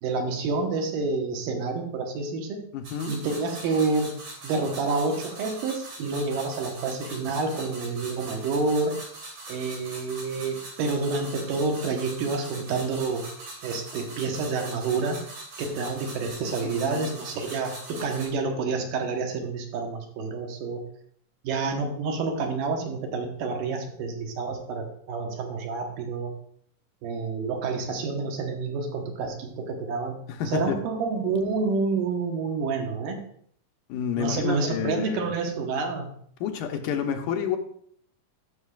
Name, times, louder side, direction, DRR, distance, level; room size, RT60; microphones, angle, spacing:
voice 1, 0.0-2.6 3.1-9.0 9.5-13.2 13.6-15.2 15.6-20.8 21.4-26.3 27.0-30.2 30.5-33.2 34.2-36.1, right 4 dB, 90° right, 3 dB, 2.8 m, -28 dB
voice 2, 2.7-3.1 16.6-17.2 30.3-30.8 33.9-35.3 36.4-37.6, left 8 dB, 80° left, 5 dB, 2.3 m, -29 dB
sound 1, 2.8-18.3, right 2 dB, 70° right, 4.4 m, -42 dB
12.5 x 6.5 x 2.4 m, 0.63 s
omnidirectional pair, 3.8 m